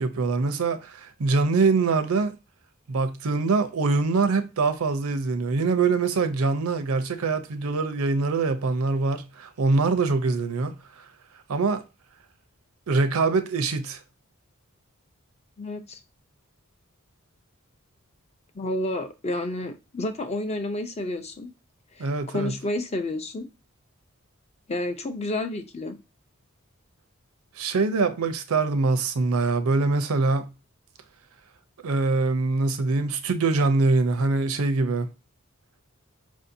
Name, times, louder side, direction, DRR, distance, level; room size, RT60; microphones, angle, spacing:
voice 1, 0.0-2.3 2.9-10.7 11.5-11.8 12.9-14.0 22.0-22.5 27.6-30.5 31.8-35.1, right 3 dB, 85° right, 0.6 m, -24 dB
voice 2, 15.6-16.0 18.5-21.5 22.0-23.5 24.7-26.0, left 1 dB, 30° left, 0.5 m, -30 dB
5.0 x 2.7 x 2.6 m
head